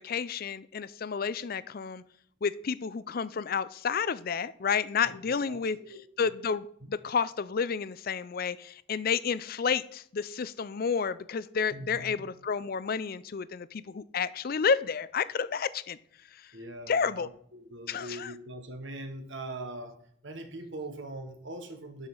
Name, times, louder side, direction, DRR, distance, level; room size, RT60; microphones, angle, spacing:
voice 1, 0.0-2.0 2.4-5.8 6.2-16.0 16.3-16.5 16.9-17.3 17.9-18.3, left 6 dB, 45° left, 17 dB, 0.4 m, -30 dB
voice 2, 5.0-6.0 11.7-12.2 16.5-20.0 20.2-22.1, right 1 dB, 60° right, 7 dB, 1.3 m, -42 dB
12.0 x 4.9 x 5.4 m, 0.64 s
head